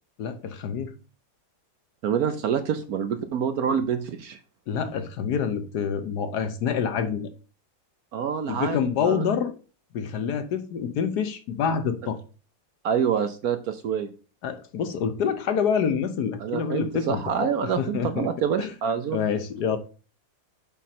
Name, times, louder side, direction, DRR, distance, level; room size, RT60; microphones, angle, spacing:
voice 1, 0.2-0.9 4.7-7.3 8.5-9.5 9.9-12.2 14.4-18.3 18.6-18.7 19.1-19.8, left 7 dB, 65° left, 1.3 m, -27 dB
voice 2, 2.0-4.4 8.1-9.2 12.8-14.1 16.4-19.2, right 7 dB, 65° right, 1.0 m, -27 dB
7.4 x 5.2 x 4.3 m
omnidirectional pair, 2.0 m